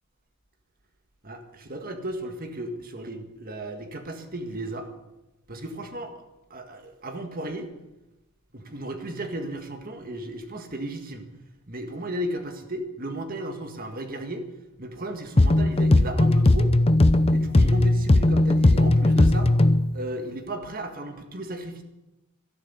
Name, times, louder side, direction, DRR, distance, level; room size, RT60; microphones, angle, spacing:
voice 1, 1.2-4.9 5.5-6.1 6.5-7.7 8.5-11.3 11.7-14.4 14.8-16.7 17.3-19.5 19.9-21.8, right 1 dB, 40° right, 6 dB, 1.8 m, -34 dB
sound 1, 15.4-19.9, left 2 dB, 25° left, 0.6 m, -18 dB
13.0 x 11.5 x 8.2 m, 1.0 s
head